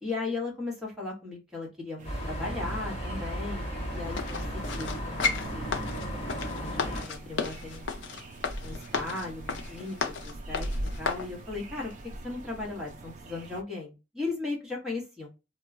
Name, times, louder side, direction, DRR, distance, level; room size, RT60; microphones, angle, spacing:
voice 1, 0.0-6.0 6.6-7.9 8.6-10.7 11.0-11.9 12.2-15.3, left 3 dB, 5° right, -4 dB, 1.0 m, -37 dB
sound 1, 2.0-7.0, equal, 30° left, 0.9 m, -35 dB
sound 2, 2.0-13.6, right 1 dB, 40° right, 0.4 m, -42 dB
sound 3, 4.2-11.3 11.8-11.9, left 5 dB, 65° left, 0.5 m, -34 dB
2.2 x 2.1 x 3.6 m, 0.28 s
head